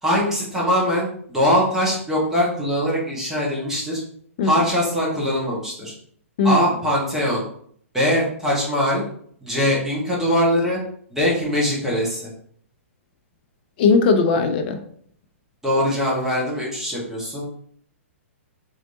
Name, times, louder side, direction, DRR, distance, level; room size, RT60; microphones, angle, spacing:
voice 1, 0.0-4.0 4.4-5.9 6.4-7.4 7.9-9.0 9.4-10.8 11.1-12.3 15.6-17.4, equal, 5° right, -6 dB, 1.3 m, -22 dB
voice 2, 6.4-6.7 13.8-14.8, left 4 dB, 45° left, 6 dB, 0.5 m, -18 dB
3.1 x 2.8 x 2.7 m, 0.62 s
figure-of-eight pair, 115°, 8 cm